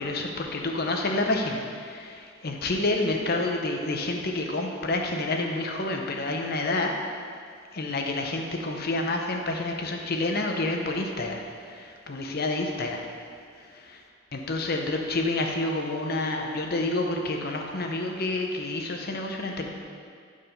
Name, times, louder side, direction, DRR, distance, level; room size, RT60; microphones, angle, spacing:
voice 1, 0.0-6.9 7.7-13.0 13.7-14.0 14.3-19.7, left 2 dB, 50° left, 2 dB, 0.8 m, -29 dB
7.8 x 4.8 x 5.5 m, 2.2 s
head